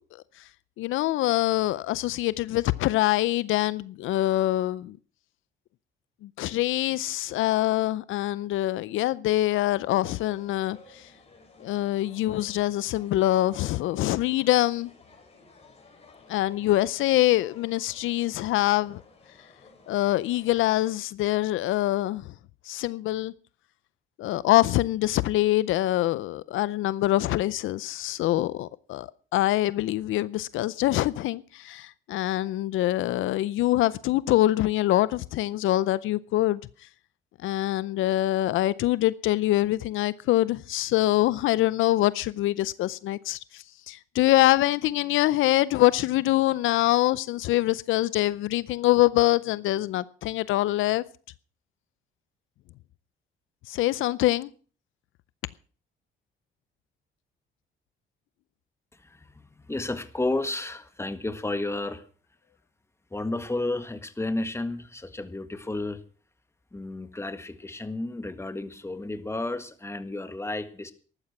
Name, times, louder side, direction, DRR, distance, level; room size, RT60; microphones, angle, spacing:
voice 1, 0.8-5.0 6.2-11.0 11.6-14.9 16.3-19.0 19.9-22.3 22.7-23.3 24.2-36.6 37.4-51.0 53.7-54.5, left 15 dB, 85° left, 0.6 m, -24 dB
sound 1, 10.0-20.9, left 3 dB, 30° left, 5.6 m, -55 dB
voice 2, 58.9-62.0 63.1-66.0 66.7-70.9, left 2 dB, 15° left, 1.8 m, -32 dB
14.0 x 12.0 x 6.0 m
cardioid pair, 90°, 20 cm